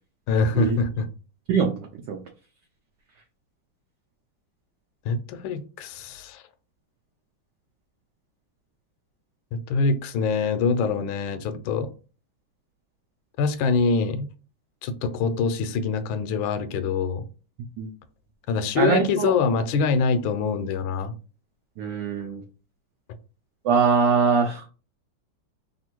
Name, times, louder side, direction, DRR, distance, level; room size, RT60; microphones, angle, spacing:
voice 1, 0.3-1.1 5.0-6.4 9.5-11.9 13.4-14.3 14.8-17.2 18.5-21.1, left 4 dB, 75° left, 1.3 m, -24 dB
voice 2, 1.5-2.2 17.8-17.9 18.8-19.3 21.8-22.4 23.6-24.7, right 5 dB, 70° right, 1.0 m, -22 dB
3.4 x 2.6 x 4.4 m
omnidirectional pair, 2.4 m